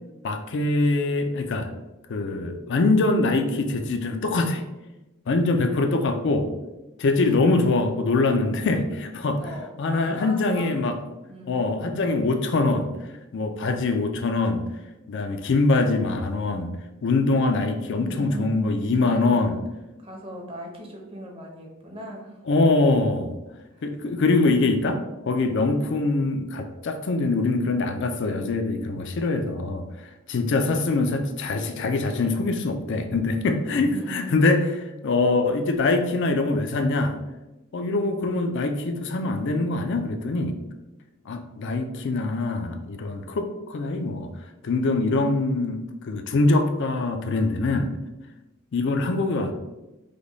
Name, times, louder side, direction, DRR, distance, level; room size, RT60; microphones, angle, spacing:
voice 1, 0.2-1.7 2.1-4.6 5.3-6.5 7.0-9.4 9.8-11.0 11.5-12.9 13.3-14.6 15.1-16.7 17.0-19.6 22.5-23.4 23.8-29.8 30.3-34.7 35.0-37.2 37.7-40.6 41.3-44.3 44.6-47.9 48.7-49.5, left 3 dB, 55° left, 6 dB, 0.4 m, -23 dB
voice 2, 9.4-10.7 11.3-11.6 17.9-19.6 20.0-22.4 23.7-23.8 24.1-24.6 33.9-34.5, equal, 25° right, 0 dB, 0.7 m, -38 dB
5.0 x 2.2 x 3.9 m, 1.0 s
head